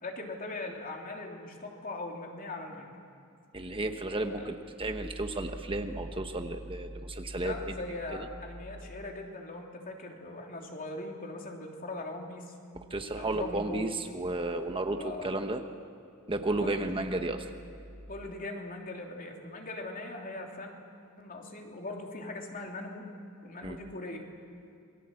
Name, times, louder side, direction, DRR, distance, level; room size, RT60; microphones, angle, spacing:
voice 1, 0.0-3.0 4.3-4.6 7.3-12.5 13.2-13.9 15.0-15.4 16.6-17.3 18.1-20.7 21.2-23.0 23.4-24.2, left 2 dB, 40° left, 1 dB, 3.1 m, -40 dB
voice 2, 3.5-7.8 8.1-8.3 12.7-15.6 16.3-17.5 23.6-23.8, right 2 dB, 25° right, 6 dB, 1.0 m, -33 dB
27.5 x 21.5 x 7.7 m, 2.6 s
head